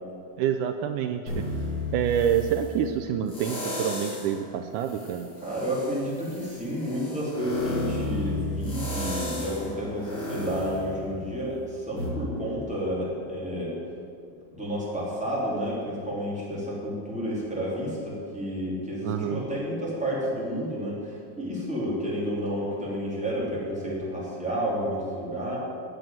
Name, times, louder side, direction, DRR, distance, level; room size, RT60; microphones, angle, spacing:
voice 1, 0.4-1.5 1.9-5.3 19.0-19.4, right 9 dB, 90° right, 7 dB, 1.8 m, -27 dB
sound 1, 1.3-2.7 3.3-4.4 4.8-11.5 12.0-12.1, left 1 dB, 35° left, 4.7 m, -33 dB
voice 2, 5.4-13.8 14.5-25.6, equal, ahead, -6 dB, 2.9 m, -30 dB
10.5 x 7.8 x 9.0 m, 2.3 s
omnidirectional pair, 4.2 m